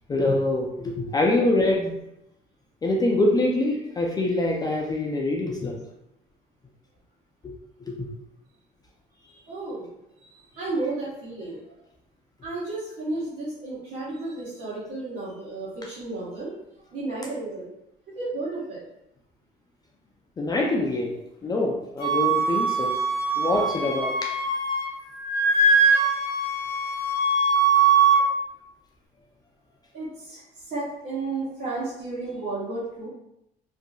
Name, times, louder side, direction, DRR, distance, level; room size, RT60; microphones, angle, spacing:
voice 1, 0.1-2.0 2.8-5.8 7.9-8.1 20.4-21.2 21.4-22.9 23.4-24.3, left 2 dB, 25° left, -1 dB, 0.3 m, -24 dB
voice 2, 9.5-9.9 10.2-11.6 12.4-16.5 16.9-17.7 18.1-18.8 29.9-33.1, right 2 dB, 60° right, -11 dB, 1.1 m, -33 dB
Wind instrument woodwind instrument, 22.0-24.9 25.2-28.2, right 4 dB, 70° left, 0.6 m, -22 dB
2.6 x 2.5 x 2.3 m, 0.85 s
cardioid pair, 110°, 17 cm